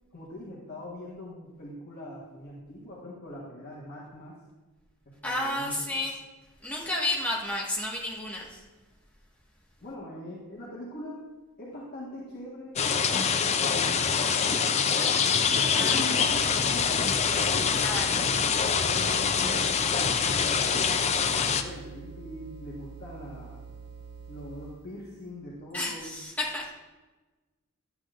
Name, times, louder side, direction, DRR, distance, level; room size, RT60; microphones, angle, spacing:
voice 1, 0.1-4.4 5.0-6.0 9.8-11.2 11.6-12.8 13.4-15.2 15.6-17.8 18.2-20.8 21.4-23.6 24.3-26.2, left 1 dB, 50° left, -6 dB, 1.5 m, -42 dB
voice 2, 5.2-6.2 6.6-8.6 15.7-16.1 17.7-18.2 25.7-26.7, left 1 dB, 10° left, -4 dB, 1.5 m, -31 dB
sound 1, 12.8-21.6, left 6 dB, 30° left, 0.4 m, -25 dB
sound 2, 16.2-24.9, right 5 dB, 85° right, 2.8 m, -45 dB
11.0 x 8.2 x 2.5 m, 1.2 s
head